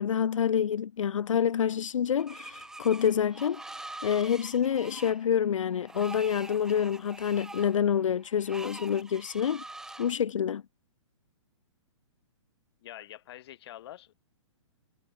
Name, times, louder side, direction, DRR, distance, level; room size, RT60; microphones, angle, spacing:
voice 1, 0.0-9.6 10.0-10.6, left 8 dB, 75° left, 2.9 m, -27 dB
Screech, 2.2-10.1, right 2 dB, 5° right, 1.4 m, -45 dB
voice 2, 12.8-14.1, left 13 dB, 50° left, 5.5 m, -46 dB
hypercardioid pair, 145°, 16 cm